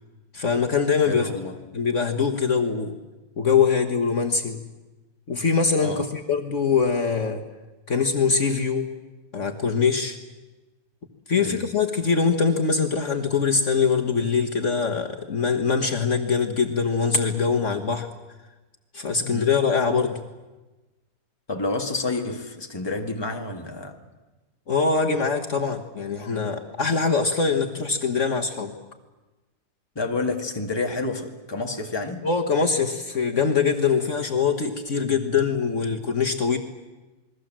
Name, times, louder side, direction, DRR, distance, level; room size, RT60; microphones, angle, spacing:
voice 1, 0.3-1.3 1.7-2.9 3.4-4.6 5.3-7.4 7.9-8.9 9.3-10.2 11.3-18.1 18.9-20.2 24.7-28.7 32.2-36.6, left 5 dB, 50° left, 1.7 m, -23 dB
voice 2, 1.0-1.6 5.8-6.1 11.4-11.6 19.2-19.5 21.5-24.0 30.0-32.2, left 2 dB, 15° left, 1.9 m, -29 dB
28.0 x 21.5 x 7.5 m
omnidirectional pair, 1.6 m